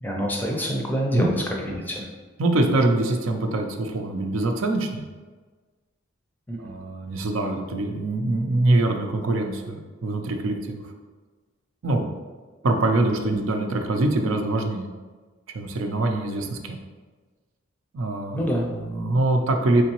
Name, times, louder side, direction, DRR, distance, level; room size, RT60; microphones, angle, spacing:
voice 1, 0.0-1.3 1.6-2.1 6.5-6.6 13.3-13.4 18.3-18.6, equal, 10° left, -1 dB, 0.4 m, -26 dB
voice 2, 2.4-5.0 6.6-10.8 11.8-12.1 12.6-14.9 15.5-16.8 17.9-18.4 18.7-19.8, right 2 dB, 85° right, 4 dB, 0.5 m, -24 dB
3.7 x 3.3 x 2.9 m, 1.4 s
head